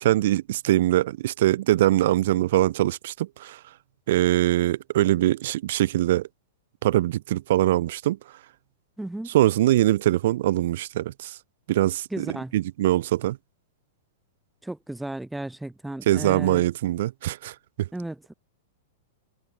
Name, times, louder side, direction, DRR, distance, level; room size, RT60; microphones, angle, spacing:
voice 1, 0.0-3.6 4.1-6.3 6.8-8.2 9.3-11.4 11.7-13.4 16.1-17.5, right 14 dB, 50° right, 1.3 m, -22 dB
voice 2, 9.0-9.3 12.1-12.5 14.6-16.7 17.9-18.3, right 1 dB, 5° right, 3.1 m, -34 dB
figure-of-eight pair, 100°, 0 cm